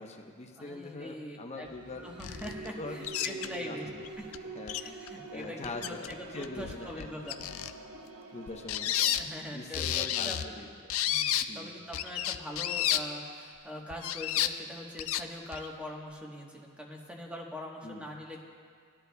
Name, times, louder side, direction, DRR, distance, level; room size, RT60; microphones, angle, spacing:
voice 1, 0.0-2.1 2.8-3.8 4.5-4.8 5.3-7.1 8.3-9.1 9.5-10.7 11.5-11.7 17.8-18.0, left 2 dB, 30° left, 2 dB, 0.9 m, -42 dB
voice 2, 0.6-1.7 1.9-4.3 4.8-7.4 9.2-10.6 11.1-18.4, left 1 dB, 5° right, -1 dB, 1.2 m, -43 dB
sound 1, 1.6-9.3, right 3 dB, 80° right, 1.0 m, -46 dB
sound 2, 2.2-2.7 3.0-3.5 4.0-4.1 4.3-4.4 4.7-5.1 5.4-6.1 6.4-7.7 8.5-9.2 9.7-10.5 10.9-11.4 11.9-13.0 13.9-14.5 15.0-15.2 15.5-15.7, left 11 dB, 65° left, 0.4 m, -31 dB
19.5 x 11.0 x 2.3 m, 2.1 s
head